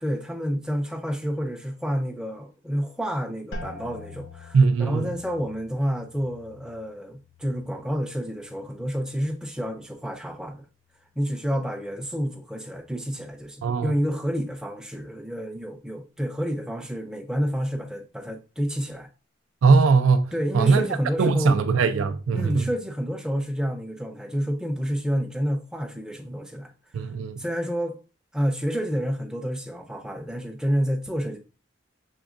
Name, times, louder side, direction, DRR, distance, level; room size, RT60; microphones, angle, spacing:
voice 1, 0.0-10.7 11.2-19.1 20.3-21.6 22.3-26.7 27.0-27.1 27.4-28.0 28.3-31.4, equal, 5° right, 0.5 m, -29 dB
sound 1, 3.5-9.1 9.5-10.2 10.7-11.1, left 2 dB, 75° left, 1.1 m, -45 dB
voice 2, 4.5-5.1 13.6-13.9 19.6-20.8 21.2-22.7 26.9-27.4, right 4 dB, 85° right, 0.4 m, -20 dB
6.1 x 3.4 x 2.4 m
head